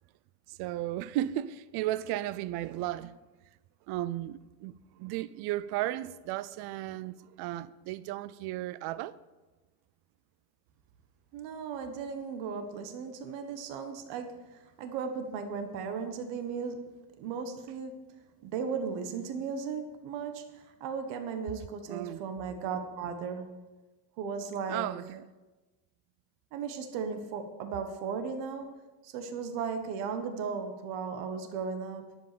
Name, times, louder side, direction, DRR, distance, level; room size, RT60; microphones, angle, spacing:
voice 1, 0.5-3.1 3.9-4.7 5.0-9.2 21.9-22.2 24.7-25.2, right 14 dB, 60° right, 0.6 m, -34 dB
voice 2, 11.3-18.1 18.4-23.6 24.2-24.9 26.5-28.8 29.0-32.2, right 5 dB, 80° right, 1.5 m, -36 dB
11.0 x 7.9 x 6.9 m
cardioid pair, 150°, 43 cm